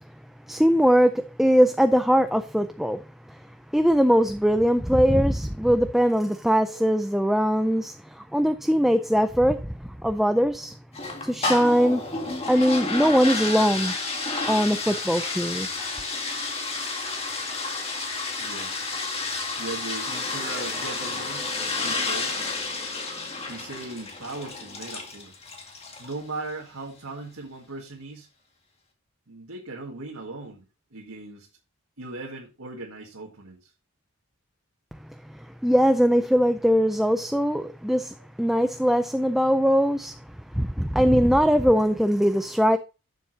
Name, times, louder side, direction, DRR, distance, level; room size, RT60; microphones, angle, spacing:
voice 1, 0.5-3.5 3.7-10.8 11.2-12.1 12.5-13.9 14.5-15.7 35.2-42.8, equal, ahead, 0.3 m, -21 dB
voice 2, 8.3-8.8 18.4-18.7 19.6-22.3 23.5-25.3 26.0-28.3 29.3-30.7 30.9-31.5 32.0-33.7, right 2 dB, 90° right, 1.8 m, -38 dB
sound 1, 10.9-26.2, left 3 dB, 30° left, 2.0 m, -31 dB
12.0 x 7.2 x 2.8 m
head